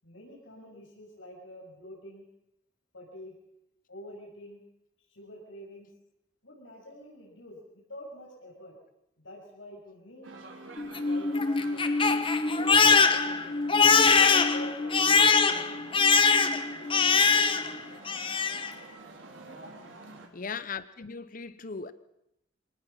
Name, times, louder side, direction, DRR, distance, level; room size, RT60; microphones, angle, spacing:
voice 1, 0.0-2.2 2.9-3.3 3.9-4.6 5.1-5.9 6.4-8.7 9.2-10.3 11.1-13.7 14.1-15.9 16.7-17.9 19.5-19.9, left 1 dB, 85° left, 7.0 m, -47 dB
sound 1, 10.2-20.3, right 2 dB, 85° right, 3.9 m, -48 dB
Crying sobbing, 10.8-17.8 18.1-18.7, left 5 dB, 25° left, 1.1 m, -23 dB
voice 2, 20.3-21.9, left 5 dB, 45° left, 0.8 m, -38 dB
25.5 x 19.0 x 5.8 m
head